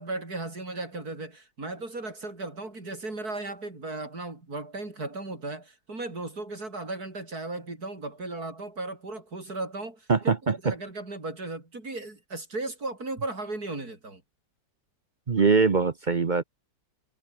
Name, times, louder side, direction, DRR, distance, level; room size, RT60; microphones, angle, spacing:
voice 1, 0.0-14.2, right 2 dB, 60° right, 6.0 m, -36 dB
voice 2, 10.1-10.7 15.3-16.4, right 4 dB, 40° right, 0.7 m, -22 dB
omnidirectional pair, 1.8 m